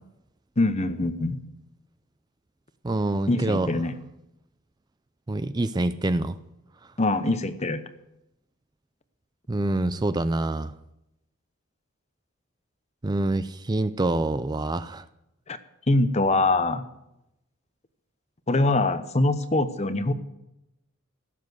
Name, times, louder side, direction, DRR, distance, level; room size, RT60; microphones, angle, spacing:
voice 1, 0.6-1.4 3.3-3.9 7.0-7.8 15.5-15.6 15.9-16.8 18.5-20.1, left 2 dB, 30° left, 11 dB, 0.8 m, -23 dB
voice 2, 2.8-3.8 5.3-6.3 9.5-10.7 13.0-15.0, right 2 dB, 20° right, 13 dB, 0.4 m, -26 dB
16.0 x 7.4 x 8.0 m, 0.87 s
head